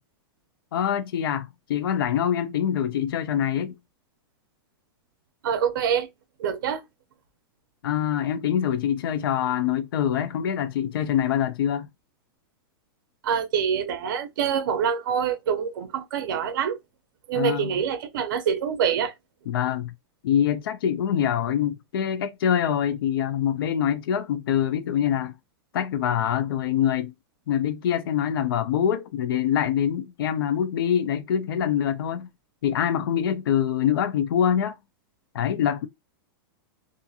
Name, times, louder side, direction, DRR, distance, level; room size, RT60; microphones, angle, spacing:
voice 1, 0.7-3.7 7.8-11.9 17.3-17.8 19.5-19.9 20.2-25.3 25.7-27.1 27.5-32.3 32.6-34.8 35.3-35.9, left 9 dB, 70° left, 0.4 m, -25 dB
voice 2, 5.4-6.1 6.4-6.8 13.2-16.8 17.3-19.1, right 7 dB, 60° right, 0.6 m, -25 dB
2.7 x 2.5 x 2.3 m
supercardioid pair, 175°, 12 cm